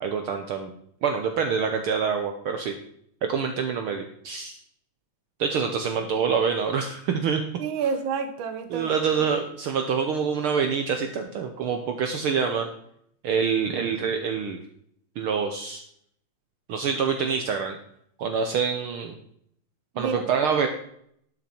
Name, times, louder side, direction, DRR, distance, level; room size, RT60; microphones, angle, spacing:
voice 1, 0.0-0.7 1.0-2.7 3.3-4.5 5.4-7.4 8.7-12.7 13.2-14.6 15.2-15.8 16.7-17.8 18.2-19.1 20.0-20.7, right 6 dB, 80° right, 5 dB, 1.2 m, -26 dB
voice 2, 7.6-8.9 19.9-20.2 20.5-20.7, right 5 dB, 60° right, 8 dB, 1.4 m, -29 dB
11.5 x 6.5 x 4.4 m, 0.68 s
omnidirectional pair, 3.4 m